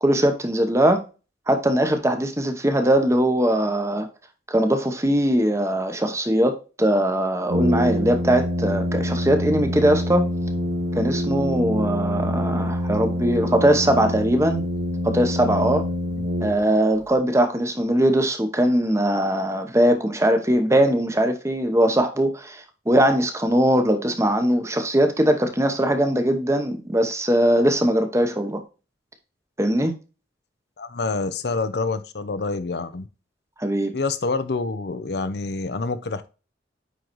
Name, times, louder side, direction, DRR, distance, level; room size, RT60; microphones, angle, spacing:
voice 1, 0.0-1.0 1.5-4.1 4.5-10.3 10.9-14.6 15.0-15.8 16.4-28.6 29.6-29.9 33.6-33.9, right 1 dB, 15° right, 0.9 m, -20 dB
Brass instrument, 7.5-17.0, equal, 60° right, 1.3 m, -26 dB
voice 2, 30.8-33.1 33.9-36.3, left 3 dB, 60° left, 0.6 m, -27 dB
9.3 x 3.9 x 3.0 m
head